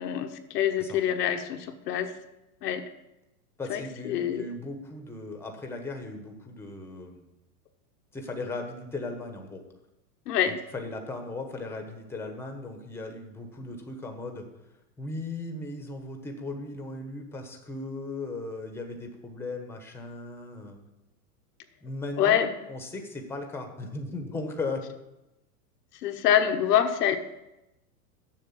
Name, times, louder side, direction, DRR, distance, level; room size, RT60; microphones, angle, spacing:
voice 1, 0.0-2.1 2.6-2.8 3.7-4.5 10.3-10.6 22.2-22.5 26.0-27.2, left 9 dB, 80° left, 6 dB, 1.1 m, -25 dB
voice 2, 3.6-7.3 8.1-9.6 10.5-14.4 15.0-20.8 21.8-22.4 22.7-24.8, left 2 dB, 5° left, 4 dB, 1.1 m, -37 dB
7.5 x 6.6 x 7.4 m, 0.92 s
supercardioid pair, 135°, 46 cm